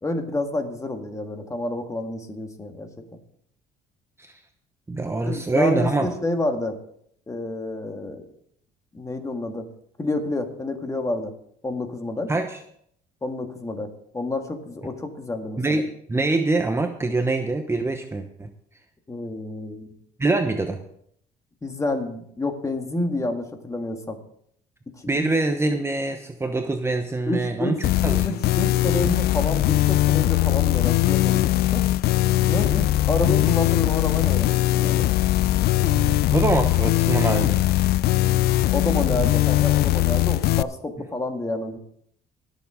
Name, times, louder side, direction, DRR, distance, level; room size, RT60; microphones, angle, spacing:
voice 1, 0.0-3.2 5.3-6.8 7.3-8.2 8.9-9.7 10.0-11.3 11.6-12.3 13.2-15.8 19.1-19.9 21.6-24.2 25.0-25.3 27.3-27.8 28.2-31.8 32.5-35.1 38.7-41.8, left 2 dB, 20° left, 5 dB, 1.8 m, -29 dB
voice 2, 4.9-6.1 12.3-12.6 15.6-18.5 20.2-20.8 25.1-28.4 35.8-37.6, right 2 dB, 15° right, 5 dB, 0.9 m, -24 dB
sound 1, 27.8-40.6, left 15 dB, 70° left, 0.4 m, -20 dB
20.5 x 7.3 x 3.7 m, 0.68 s
cardioid pair, 110°, 17 cm